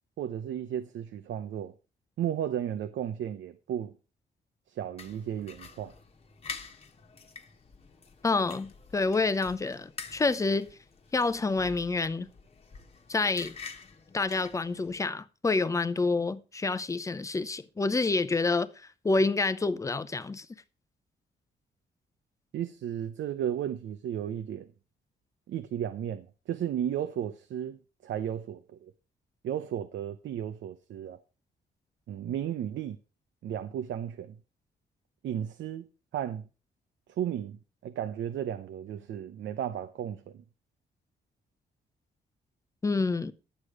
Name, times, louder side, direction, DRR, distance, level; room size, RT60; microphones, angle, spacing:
voice 1, 0.2-1.7 2.2-3.9 4.7-5.9 22.5-24.7 25.5-28.9 29.4-31.2 32.1-33.0 33.4-34.4 35.2-35.9 36.1-36.5 37.1-40.4, right 10 dB, 90° right, 0.8 m, -34 dB
sound 1, 5.0-15.0, left 5 dB, 30° left, 1.3 m, -47 dB
voice 2, 8.2-10.7 11.1-12.3 13.1-13.5 14.1-18.7 19.0-20.5 42.8-43.3, left 3 dB, 15° left, 0.6 m, -28 dB
11.5 x 8.4 x 4.9 m
wide cardioid pair, 175°, 19 cm